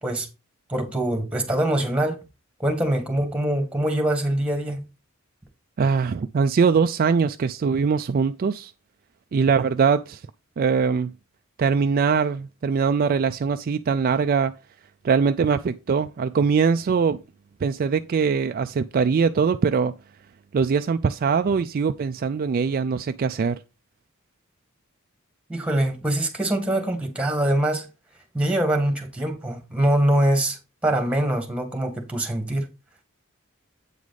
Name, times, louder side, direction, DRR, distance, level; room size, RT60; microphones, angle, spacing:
voice 1, 0.7-2.2 2.6-4.8 25.5-27.9 28.3-32.7, right 1 dB, 5° right, 1.6 m, -23 dB
voice 2, 5.8-8.7 9.3-10.2 10.6-11.1 11.6-14.5 15.0-17.2 17.6-19.9 20.5-23.6, right 5 dB, 45° right, 0.3 m, -22 dB
8.3 x 4.8 x 4.0 m
head